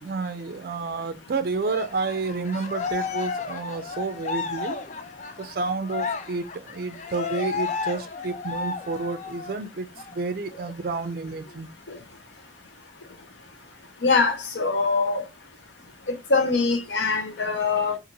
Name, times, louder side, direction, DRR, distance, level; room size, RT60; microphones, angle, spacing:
voice 1, 0.0-4.9 5.4-11.7, right 4 dB, 55° right, 0.4 m, -30 dB
Cheering, 1.6-9.6 10.0-10.1 10.5-11.5, left 5 dB, 40° left, 0.3 m, -33 dB
voice 2, 14.0-15.2 16.1-18.0, left 4 dB, 75° left, 0.8 m, -23 dB
3.0 x 2.5 x 2.6 m
head